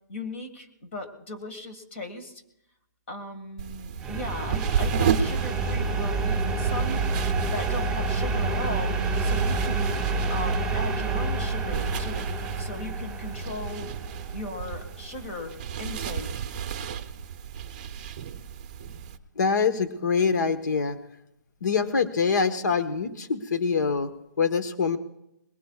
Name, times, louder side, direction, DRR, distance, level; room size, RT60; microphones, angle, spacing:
voice 1, 0.1-2.4 3.1-7.0 7.5-10.0 10.3-12.3 12.6-13.9 14.3-16.4, left 2 dB, 40° left, 5 dB, 1.8 m, -37 dB
sound 1, 3.6-19.2, right 8 dB, 25° right, 0.7 m, -33 dB
sound 2, 4.0-15.6, right 3 dB, 5° right, 4.3 m, -28 dB
voice 2, 19.3-21.0 21.6-25.0, left 5 dB, 75° left, 10 dB, 1.2 m, -25 dB
21.5 x 20.0 x 2.4 m, 0.84 s
hypercardioid pair, 175°, 10 cm